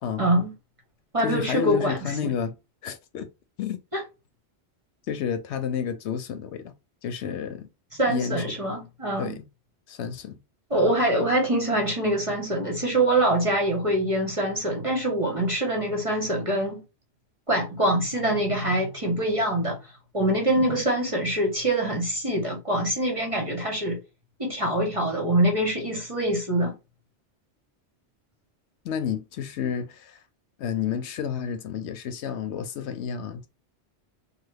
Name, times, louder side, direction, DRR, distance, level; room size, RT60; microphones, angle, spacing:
voice 1, 0.2-0.5 1.1-2.0 2.2-2.3 3.9-4.0 8.0-9.4 10.7-16.8 17.5-19.8 20.1-24.0 24.4-26.8, right 1 dB, 35° right, 0.9 m, -24 dB
voice 2, 1.2-2.6 2.8-3.3 3.6-3.8 5.1-6.7 7.0-7.7 8.1-8.4 9.2-9.4 9.9-10.4 28.8-30.2 30.6-33.5, left 7 dB, 80° left, 0.9 m, -30 dB
3.3 x 2.1 x 3.3 m
omnidirectional pair, 1.1 m